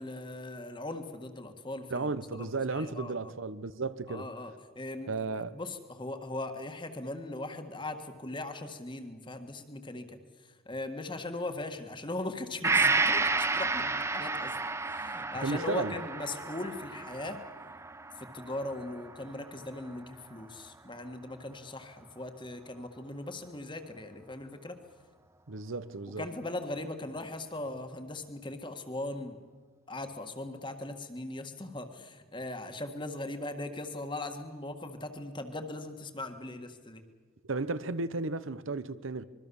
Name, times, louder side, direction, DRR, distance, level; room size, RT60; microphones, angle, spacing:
voice 1, 0.0-2.1 2.4-3.3 4.1-5.2 5.5-14.6 14.9-17.4 18.2-24.8 26.2-29.4 29.9-37.0, left 2 dB, 20° left, 1.7 m, -39 dB
voice 2, 1.9-4.3 5.1-5.5 15.4-16.0 25.5-26.3 37.4-39.2, right 3 dB, 70° right, 0.9 m, -34 dB
Gong, 12.6-20.3 20.7-20.8, right 3 dB, 15° right, 0.6 m, -32 dB
25.5 x 22.5 x 7.1 m
head